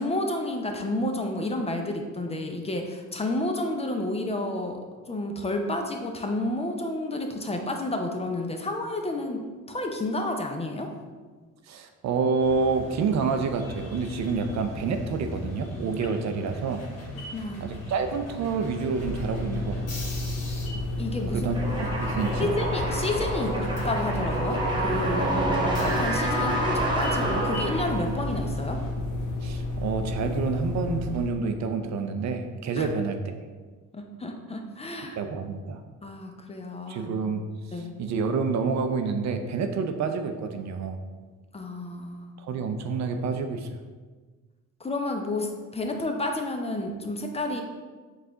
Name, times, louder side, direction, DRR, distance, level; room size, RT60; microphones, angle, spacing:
voice 1, 0.0-4.8 5.1-10.9 17.3-17.7 21.0-21.5 22.4-28.8 32.8-32.9 33.9-35.2 36.0-37.1 37.7-37.9 41.5-42.3 44.8-47.6, left 1 dB, 20° left, 3 dB, 0.5 m, -30 dB
voice 2, 11.7-16.8 17.6-20.0 21.3-22.5 25.5-25.6 29.4-33.4 35.2-35.8 36.9-37.4 37.7-41.0 42.4-43.8, right 5 dB, 65° right, 6 dB, 0.5 m, -28 dB
sound 1, 12.4-28.9, left 1 dB, 55° left, 1.2 m, -40 dB
sound 2, 19.0-31.4, left 2 dB, 75° left, 0.7 m, -31 dB
sound 3, 21.5-28.3, right 1 dB, 15° right, 0.9 m, -28 dB
4.7 x 2.4 x 3.7 m, 1.4 s
cardioid pair, 90°, 30 cm